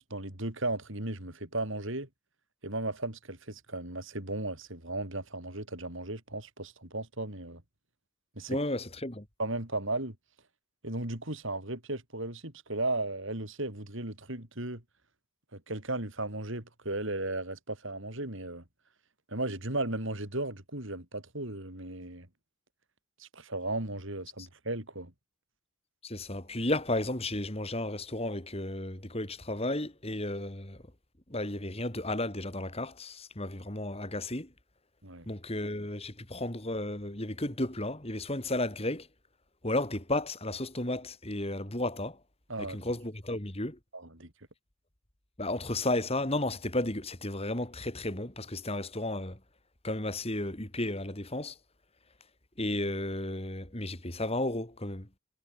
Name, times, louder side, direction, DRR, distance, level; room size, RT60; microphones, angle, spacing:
voice 1, 0.0-2.1 2.6-7.6 8.4-8.6 9.4-10.1 10.8-14.8 15.5-18.6 19.3-22.3 23.2-25.1 35.0-35.3 42.5-42.8 43.9-44.3, right 2 dB, 60° right, 4.6 m, -35 dB
voice 2, 8.5-9.2 26.0-30.8 31.3-34.5 35.3-39.1 39.6-42.2 42.6-43.8 45.4-49.4 49.8-51.6 52.6-55.1, left 1 dB, 25° left, 3.0 m, -33 dB
head